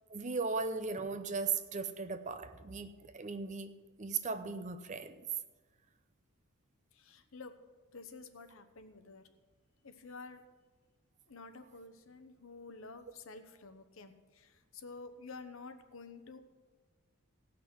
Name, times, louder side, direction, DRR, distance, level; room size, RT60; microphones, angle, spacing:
voice 1, 0.1-3.7 4.0-5.2, right 4 dB, 35° right, 0.6 m, -37 dB
voice 2, 6.9-7.6 7.9-9.3 9.8-10.4 11.3-16.4, left 4 dB, 65° left, 0.9 m, -50 dB
16.5 x 6.0 x 6.1 m
head